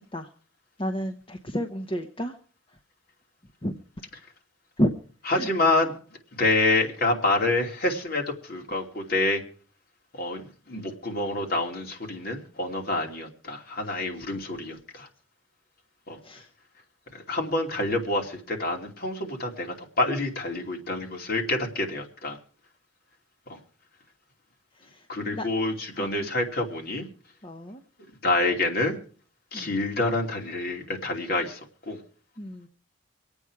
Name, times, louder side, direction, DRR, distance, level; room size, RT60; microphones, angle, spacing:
voice 1, 0.8-2.3 3.6-3.7 4.8-4.9 5.3-5.5 16.2-16.5 24.9-25.5 26.0-26.3 27.4-27.8 29.5-29.8 32.4-32.7, equal, 30° left, 4 dB, 1.0 m, -30 dB
voice 2, 5.3-5.9 6.4-9.4 10.2-10.4 10.7-15.1 16.1-16.2 17.1-22.4 23.5-23.6 25.1-27.0 28.2-28.9 29.5-31.6 31.9-32.0, left 2 dB, 50° left, 1 dB, 2.8 m, -27 dB
25.0 x 8.9 x 4.7 m, 0.43 s
head